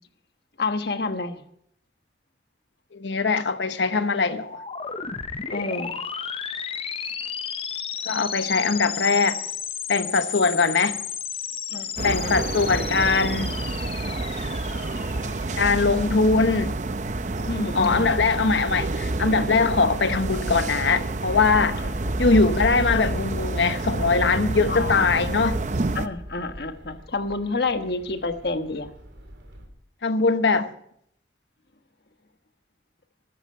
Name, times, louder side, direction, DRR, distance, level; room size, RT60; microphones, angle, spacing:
voice 1, 0.6-1.4 5.5-6.0 11.7-12.3 17.4-18.0 22.0-22.1 24.7-25.3 25.9-28.9, left 3 dB, 60° left, 1.3 m, -29 dB
voice 2, 2.9-4.6 8.1-9.4 9.9-11.0 12.0-13.6 15.6-16.8 17.7-21.8 22.2-25.6 30.0-30.7, left 4 dB, 80° left, 1.0 m, -21 dB
sound 1, 4.4-16.1, left 7 dB, 30° left, 0.8 m, -33 dB
sound 2, 12.0-26.1, right 2 dB, 40° right, 0.7 m, -29 dB
sound 3, 21.4-29.7, equal, 85° right, 3.4 m, -38 dB
14.0 x 13.0 x 5.6 m
head